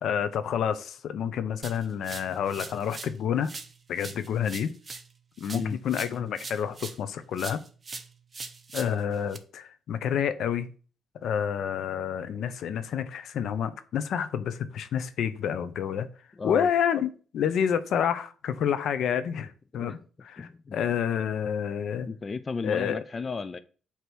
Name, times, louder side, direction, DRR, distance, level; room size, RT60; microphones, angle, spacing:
voice 1, 0.0-3.5 3.9-4.7 5.4-7.6 8.7-10.7 11.2-16.1 16.4-20.0 20.2-22.1 22.6-23.0, left 8 dB, 70° left, 0.7 m, -29 dB
sound 1, 1.6-3.2 3.4-7.1 7.4-9.4, right 4 dB, 30° right, 0.9 m, -42 dB
voice 2, 16.4-16.7 19.8-20.0 20.4-20.7 22.1-23.6, left 4 dB, 35° left, 0.5 m, -34 dB
8.1 x 3.0 x 6.1 m
cardioid pair, 90°, 0 cm